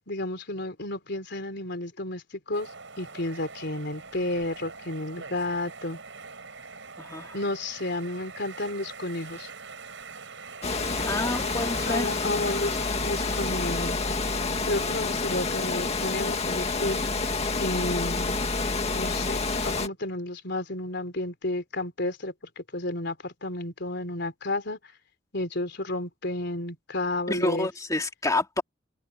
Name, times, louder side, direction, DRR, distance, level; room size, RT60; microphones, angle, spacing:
voice 1, 0.0-2.7 3.0-6.0 7.3-9.5 11.9-14.0 14.7-17.2 17.6-18.4 18.9-24.8 25.3-27.7, left 2 dB, 60° left, 3.9 m, -32 dB
sound 1, 2.5-15.2, right 5 dB, 70° right, 6.2 m, -44 dB
voice 2, 7.0-7.4 11.0-12.1 27.3-28.6, left 2 dB, 20° left, 2.4 m, -29 dB
Water, 10.6-19.9, left 3 dB, 35° left, 2.1 m, -28 dB
head